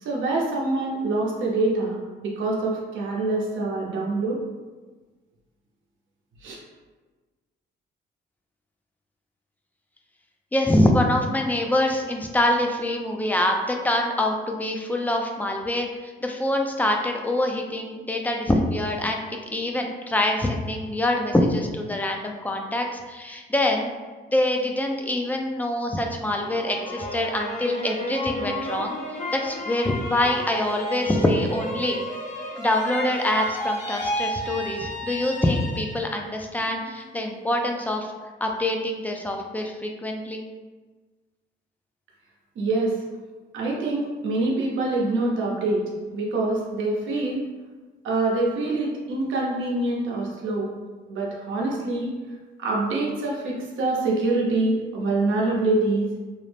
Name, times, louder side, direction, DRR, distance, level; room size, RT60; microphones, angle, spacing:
voice 1, 0.0-4.4 6.4-6.6 42.6-43.0 43.5-45.8 46.1-47.4 48.0-50.7 51.1-52.1 52.6-56.1, right 2 dB, 75° right, -2 dB, 0.7 m, -25 dB
voice 2, 10.5-19.2 19.5-23.9 24.3-28.9 29.3-32.0 32.6-38.1 38.4-40.4, left 1 dB, 10° left, 2 dB, 0.3 m, -25 dB
sound 1, 26.4-36.2 36.6-37.3, equal, 35° left, 0.7 m, -32 dB
2.6 x 2.0 x 3.2 m, 1.3 s
cardioid pair, 90°, 20 cm